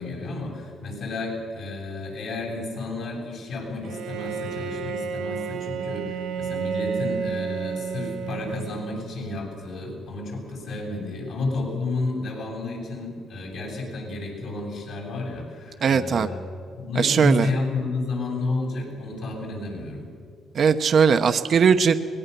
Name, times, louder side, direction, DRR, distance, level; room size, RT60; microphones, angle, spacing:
voice 1, 0.0-16.4 16.7-20.1, left 2 dB, 75° left, -1 dB, 7.3 m, -31 dB
Bowed string instrument, 3.8-9.3, right 6 dB, 90° right, 1.4 m, -31 dB
voice 2, 15.8-16.3 17.0-17.5 20.5-22.0, right 6 dB, 55° right, 8 dB, 0.9 m, -19 dB
23.5 x 20.5 x 6.9 m, 2.3 s
cardioid pair, 90°, 0 cm